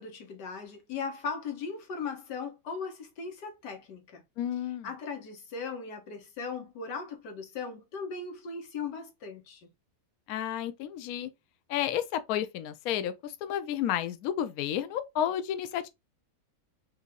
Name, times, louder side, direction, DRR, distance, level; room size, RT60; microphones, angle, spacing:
voice 1, 0.0-4.2 4.8-9.7, left 5 dB, 60° left, 1.7 m, -38 dB
voice 2, 4.4-4.9 10.3-11.3 11.7-15.9, left 10 dB, 85° left, 0.8 m, -31 dB
4.5 x 2.8 x 3.7 m
omnidirectional pair, 2.2 m